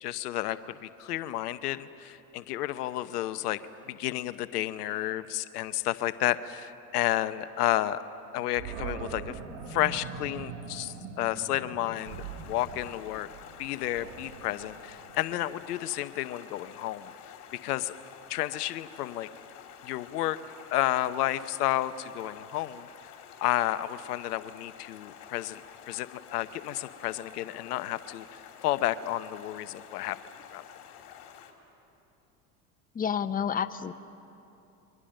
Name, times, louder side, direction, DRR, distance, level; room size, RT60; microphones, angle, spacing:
voice 1, 0.0-3.6 3.9-8.0 8.3-9.4 9.7-13.3 13.6-17.1 17.6-17.9 18.3-19.3 19.8-20.4 20.7-22.9 23.4-25.6 25.9-30.2 30.5-30.6, left 14 dB, 80° left, 13 dB, 0.9 m, -31 dB
Animal, 8.6-15.7, right 6 dB, 65° right, 2.4 m, -42 dB
Stream, 11.9-31.5, left 9 dB, 55° left, 3.4 m, -49 dB
voice 2, 32.9-33.9, left 7 dB, 20° left, 11 dB, 0.9 m, -29 dB
28.5 x 23.5 x 6.5 m, 2.9 s
hypercardioid pair, 90°, 46 cm